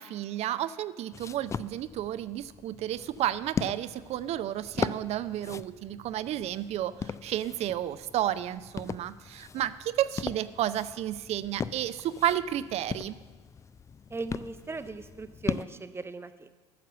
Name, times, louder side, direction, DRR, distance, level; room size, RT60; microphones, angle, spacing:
voice 1, 0.0-13.2, right 12 dB, 45° right, 14 dB, 0.5 m, -32 dB
sound 1, 1.1-15.6, left 6 dB, 20° left, 0.3 m, -39 dB
voice 2, 14.1-16.5, right 3 dB, 15° right, 11 dB, 0.7 m, -38 dB
12.0 x 6.7 x 7.4 m, 1.4 s
figure-of-eight pair, 60°, 15 cm